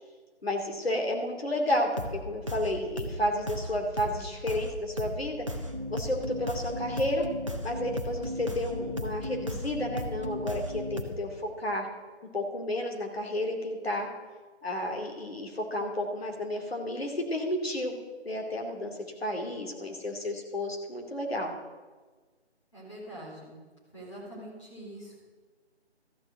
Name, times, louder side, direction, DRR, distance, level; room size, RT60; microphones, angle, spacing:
voice 1, 0.4-5.5 5.9-7.3 7.6-11.3 11.6-11.9 12.3-14.1 14.6-18.0 18.2-18.9 19.2-21.5, left 1 dB, 60° left, 2 dB, 2.7 m, -31 dB
sound 1, 2.0-2.2 2.5-2.7 3.0-3.2 3.5-3.7 4.0-4.2 4.5-4.7 5.0-5.2 5.5-11.0, equal, 30° right, 0.8 m, -35 dB
voice 2, 22.7-23.6 23.9-25.2, right 1 dB, 25° left, -5 dB, 3.4 m, -44 dB
13.0 x 6.6 x 7.7 m, 1.3 s
figure-of-eight pair, 180°, 34 cm